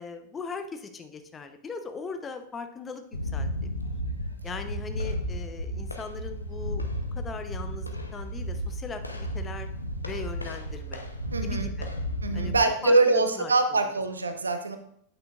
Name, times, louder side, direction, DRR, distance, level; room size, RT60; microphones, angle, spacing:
voice 1, 0.0-3.0 3.3-3.7 4.4-6.8 7.1-9.7 10.0-11.1 11.4-11.9 12.3-13.8, left 4 dB, 20° left, 7 dB, 0.7 m, -39 dB
sound 1, 3.1-12.6, equal, 85° left, 0.8 m, -33 dB
voice 2, 11.3-11.7 12.2-14.8, right 3 dB, 75° right, 8 dB, 0.8 m, -24 dB
8.9 x 8.7 x 2.4 m, 0.68 s
figure-of-eight pair, 90°, 0 cm